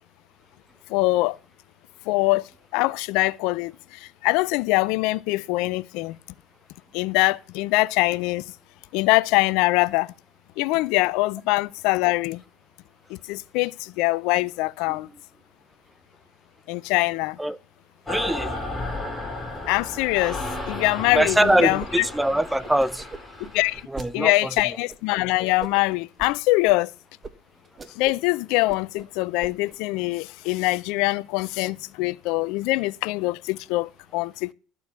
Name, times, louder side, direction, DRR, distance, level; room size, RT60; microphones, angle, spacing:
voice 1, 0.9-1.4 2.1-2.4 2.7-6.2 6.9-8.4 8.9-10.1 10.6-12.4 13.1-15.1 16.7-17.4 19.7-20.4 20.7-22.1 23.5-23.8 24.1-26.9 28.0-34.5, left 21 dB, 70° left, 0.4 m, -23 dB
sound 1, 18.1-23.8, left 2 dB, 15° left, 3.4 m, -34 dB
voice 2, 18.1-18.5 21.1-23.0 23.9-24.3, right 1 dB, 5° right, 0.7 m, -22 dB
sound 2, 21.5-21.9 22.1-24.1 24.6-25.0 25.6-26.3 26.7-26.8 27.2-27.3 27.6-28.3 28.5-29.1 29.4-29.8, right 4 dB, 25° right, 1.3 m, -40 dB
13.0 x 4.6 x 6.9 m
hypercardioid pair, 70°, 0 cm